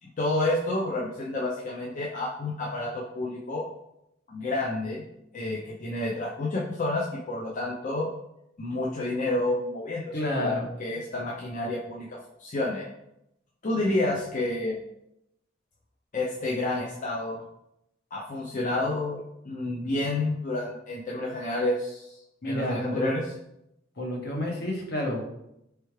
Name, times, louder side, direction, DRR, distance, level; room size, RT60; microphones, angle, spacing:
voice 1, 0.0-3.6 4.3-5.0 5.3-8.1 8.6-12.9 13.6-14.8 16.1-17.4 18.1-22.2 22.4-23.2, left 2 dB, 40° left, -4 dB, 0.5 m, -29 dB
voice 2, 10.1-10.7 22.4-23.1 24.0-25.2, left 1 dB, 55° left, 0 dB, 1.0 m, -30 dB
4.5 x 3.3 x 3.2 m, 0.84 s
head